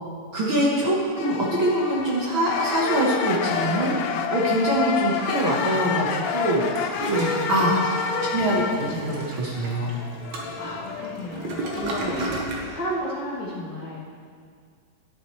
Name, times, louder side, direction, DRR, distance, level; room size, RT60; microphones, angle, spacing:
voice 1, 0.3-7.7 8.3-9.9, right 1 dB, 50° right, -5 dB, 1.8 m, -24 dB
sound 1, 1.2-12.4, left 6 dB, 85° left, 2.1 m, -29 dB
Toilet flush, 6.5-12.7, right 2 dB, 75° right, 2.5 m, -34 dB
voice 2, 7.3-8.5 10.6-14.0, equal, 45° left, -7 dB, 1.8 m, -34 dB
12.0 x 10.0 x 3.2 m, 2.2 s
omnidirectional pair, 3.3 m